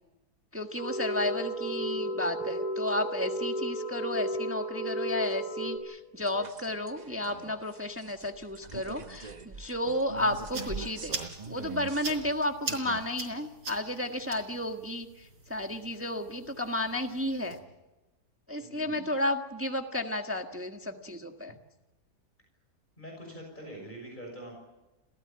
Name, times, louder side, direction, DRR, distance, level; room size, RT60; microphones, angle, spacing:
voice 1, 0.5-11.2 11.5-15.1 15.5-17.6 18.5-21.5, left 1 dB, 10° right, 4 dB, 1.4 m, -32 dB
sound 1, 0.8-5.8, right 1 dB, 60° left, 6.2 m, -33 dB
sound 2, 6.2-13.0, right 5 dB, 30° right, 1.0 m, -43 dB
sound 3, 10.2-17.6, right 3 dB, 85° right, 5.0 m, -43 dB
voice 2, 18.6-19.2 23.0-24.6, right 1 dB, 30° left, 1 dB, 6.5 m, -44 dB
27.0 x 17.5 x 8.9 m, 1.1 s
omnidirectional pair, 1.7 m